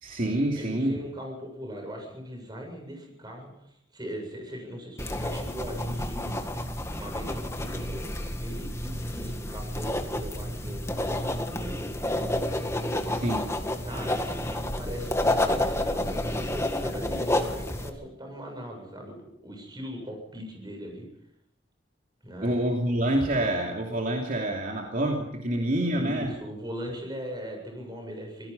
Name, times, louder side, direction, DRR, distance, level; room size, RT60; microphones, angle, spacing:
voice 1, 0.0-1.0 13.1-13.5 22.4-26.3, right 1 dB, 50° right, 0 dB, 2.9 m, -27 dB
voice 2, 0.5-6.5 7.0-12.3 12.9-13.1 13.8-21.1 22.2-22.8 25.9-28.5, equal, 25° right, 2 dB, 7.8 m, -40 dB
sound 1, 5.0-17.9, left 1 dB, 15° left, 1.9 m, -30 dB
27.0 x 17.5 x 5.6 m, 0.77 s
head